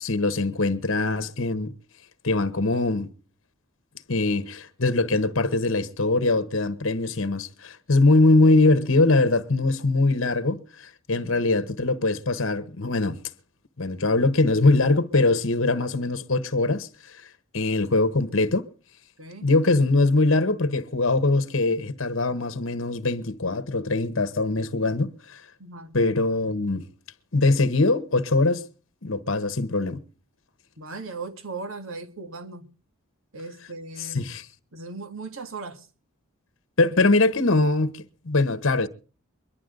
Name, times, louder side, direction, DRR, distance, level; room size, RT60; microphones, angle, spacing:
voice 1, 0.0-1.7 2.2-3.1 4.1-13.2 13.8-17.2 17.5-18.7 19.4-25.4 25.9-26.9 27.3-28.6 29.0-30.0 34.0-34.4 36.8-38.9, left 2 dB, 60° left, 1.2 m, -22 dB
voice 2, 19.2-19.5 25.6-26.0 30.8-32.7 33.3-34.3 34.7-35.9, right 3 dB, 65° right, 1.9 m, -38 dB
23.5 x 11.5 x 3.8 m
head